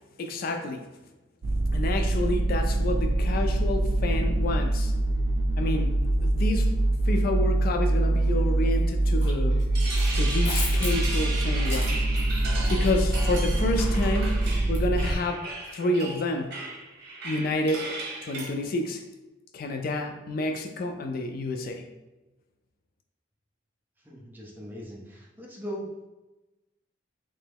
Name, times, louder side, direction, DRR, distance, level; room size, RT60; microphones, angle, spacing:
voice 1, 0.2-0.8 1.7-4.9 5.6-6.8 7.1-9.6 10.1-12.0 12.7-15.5 15.7-16.5 17.2-17.9 18.2-19.0 19.5-21.8, left 2 dB, 50° left, 5 dB, 0.3 m, -29 dB
sound 1, 1.4-15.1, right 1 dB, 80° right, 0.5 m, -24 dB
sound 2, 8.7-9.3 9.6-15.2, left 2 dB, 90° left, 1.4 m, -38 dB
sound 3, 9.5-18.5, right 2 dB, 55° right, 0.9 m, -36 dB
voice 2, 24.0-26.1, equal, 10° right, -3 dB, 0.6 m, -39 dB
3.2 x 2.9 x 3.5 m, 1.1 s
head